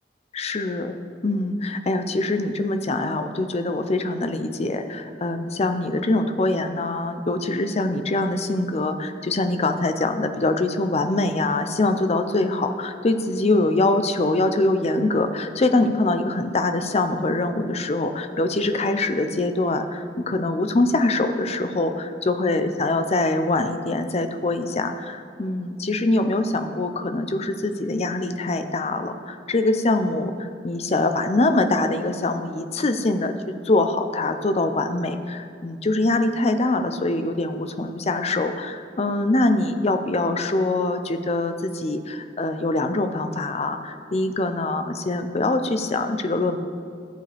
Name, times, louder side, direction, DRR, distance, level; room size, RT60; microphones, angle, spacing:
voice 1, 0.3-1.0 1.2-33.3 33.7-46.6, left 2 dB, 35° left, 8 dB, 0.6 m, -23 dB
14.5 x 7.6 x 3.4 m, 2.3 s
head